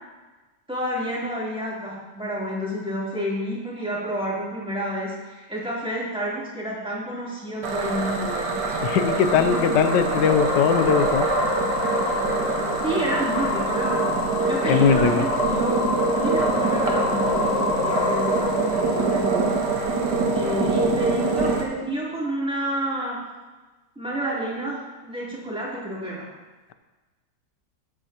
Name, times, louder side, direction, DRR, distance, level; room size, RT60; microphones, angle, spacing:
voice 1, 0.7-8.5 8.9-9.0 9.3-9.4 12.8-14.1 14.4-15.8 16.1-19.6 20.3-23.2 23.9-26.3, right 1 dB, 5° right, -7 dB, 3.2 m, -29 dB
sound 1, 7.6-21.6, right 3 dB, 80° right, 1.9 m, -24 dB
sound 2, 7.8-20.3, left 5 dB, 60° left, 0.9 m, -29 dB
voice 2, 8.8-11.3 14.6-15.2, left 7 dB, 85° left, 9 dB, 1.4 m, -20 dB
14.5 x 9.1 x 2.9 m, 1.2 s
omnidirectional pair, 1.8 m